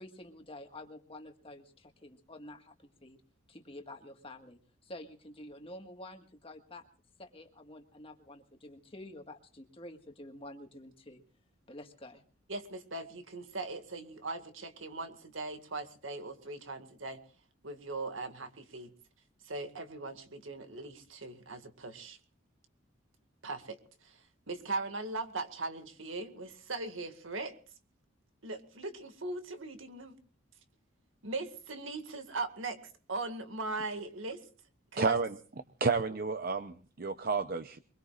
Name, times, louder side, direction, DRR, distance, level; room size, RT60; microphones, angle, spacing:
voice 1, 0.0-3.2 3.5-6.8 7.2-11.2 11.7-12.2, left 1 dB, 30° left, 5 dB, 1.6 m, -49 dB
voice 2, 12.5-17.2 17.6-18.9 19.4-22.2 23.4-24.2 24.5-27.6 28.4-30.1 31.2-34.4 34.9-35.2, right 3 dB, 75° right, 7 dB, 2.0 m, -39 dB
voice 3, 35.0-35.4 35.8-37.8, right 4 dB, 45° right, 9 dB, 0.7 m, -31 dB
23.5 x 22.0 x 2.5 m, 0.40 s
head